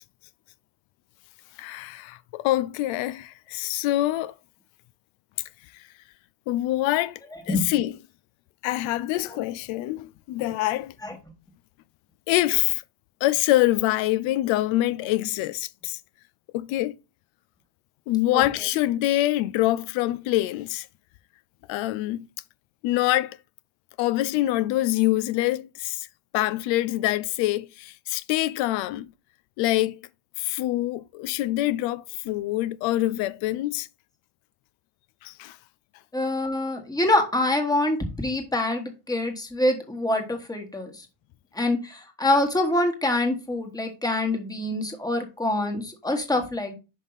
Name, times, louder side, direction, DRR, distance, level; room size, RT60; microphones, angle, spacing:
voice 1, 1.6-4.3 5.7-5.9 6.5-7.2 7.5-8.0 8.6-10.9 12.3-12.8 13.2-16.0 16.5-17.0 18.1-20.9 21.7-22.3 22.8-23.4 24.0-26.1 26.3-29.1 29.6-30.0 30.4-33.9 35.2-35.6, left 16 dB, 90° left, 0.5 m, -25 dB
voice 2, 36.1-41.0 41.5-46.7, left 1 dB, 10° left, 1.4 m, -25 dB
5.5 x 5.4 x 4.0 m
cardioid pair, 145°, 45 cm